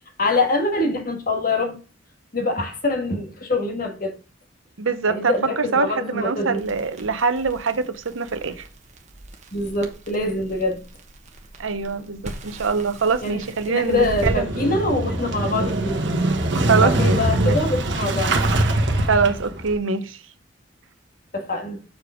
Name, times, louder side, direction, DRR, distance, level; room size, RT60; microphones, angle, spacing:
voice 1, 0.2-1.8 2.3-4.1 5.1-6.6 9.5-10.8 13.2-13.4 13.7-16.0 16.8-18.4 21.3-21.8, left 2 dB, 45° left, 1.5 m, -24 dB
voice 2, 4.8-8.7 11.6-14.5 16.7-17.6 19.1-20.2, right 5 dB, 80° right, 0.8 m, -23 dB
Crackle, 6.5-14.4, right 1 dB, 35° right, 1.1 m, -39 dB
Motorcycle / Engine starting, 13.9-19.7, right 1 dB, 60° right, 1.1 m, -23 dB
6.5 x 5.0 x 5.0 m
head